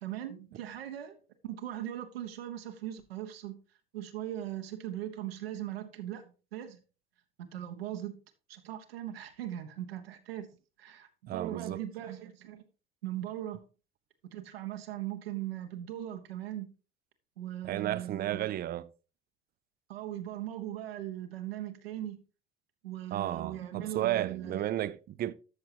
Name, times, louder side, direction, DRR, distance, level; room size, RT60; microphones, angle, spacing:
voice 1, 0.0-1.1 1.4-3.6 3.9-6.8 7.4-8.1 8.5-10.5 10.8-12.6 13.0-13.6 14.3-16.7 17.4-18.5 19.9-22.2 22.8-24.6, right 12 dB, 75° right, 1.1 m, -39 dB
voice 2, 11.3-11.8 17.6-18.8 23.1-25.3, right 13 dB, 30° right, 0.5 m, -33 dB
12.5 x 6.7 x 2.8 m
figure-of-eight pair, 65°, 30 cm